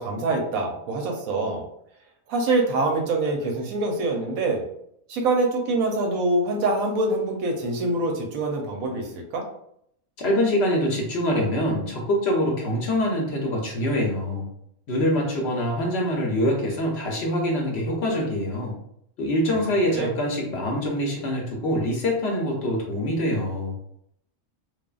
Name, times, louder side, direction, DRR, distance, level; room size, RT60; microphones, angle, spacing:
voice 1, 0.0-1.6 2.3-4.6 5.1-9.4 19.9-20.1, right 2 dB, 85° right, 2 dB, 1.1 m, -25 dB
voice 2, 10.2-14.5 14.9-18.8 19.2-23.7, equal, 60° left, -1 dB, 0.8 m, -24 dB
3.2 x 2.0 x 2.3 m, 0.71 s
omnidirectional pair, 1.4 m